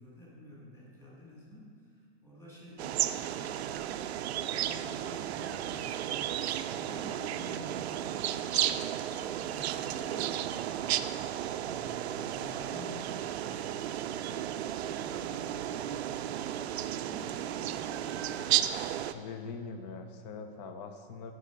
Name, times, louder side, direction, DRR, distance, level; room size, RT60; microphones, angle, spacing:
voice 1, 0.0-4.0 4.4-11.1 11.5-16.4 16.9-17.8, left 1 dB, 10° left, -6 dB, 2.1 m, -50 dB
sound 1, 2.8-19.1, right 11 dB, 85° right, 0.5 m, -33 dB
voice 2, 19.1-21.3, left 4 dB, 40° left, 7 dB, 0.7 m, -42 dB
9.3 x 5.5 x 5.2 m, 2.1 s
supercardioid pair, 150°, 32 cm